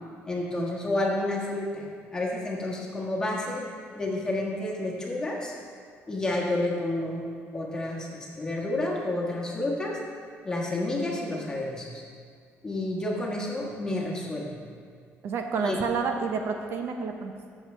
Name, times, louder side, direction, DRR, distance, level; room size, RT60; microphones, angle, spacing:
voice 1, 0.3-1.8 2.1-3.6 3.9-5.5 6.1-7.3 7.5-10.0 10.4-12.0 12.6-14.6 15.6-15.8, left 2 dB, 15° left, -3 dB, 1.4 m, -30 dB
voice 2, 15.2-17.3, right 5 dB, 55° right, 4 dB, 0.7 m, -29 dB
14.0 x 6.6 x 3.3 m, 2.1 s
cardioid pair, 160°, 5 cm